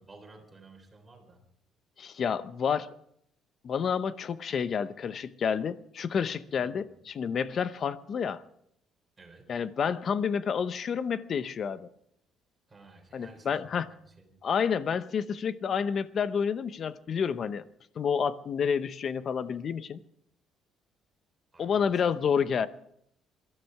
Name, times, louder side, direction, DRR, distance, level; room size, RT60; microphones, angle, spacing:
voice 1, 0.0-1.4 6.5-7.0 9.2-9.6 12.7-14.4 21.5-22.2, right 3 dB, 15° right, 3 dB, 3.5 m, -54 dB
voice 2, 2.0-2.9 3.6-8.4 9.5-11.9 13.1-13.9 14.4-17.6 18.0-20.0 21.6-22.7, left 7 dB, 40° left, 14 dB, 0.8 m, -29 dB
22.0 x 13.5 x 4.8 m, 0.71 s
cardioid pair, 155°, 0 cm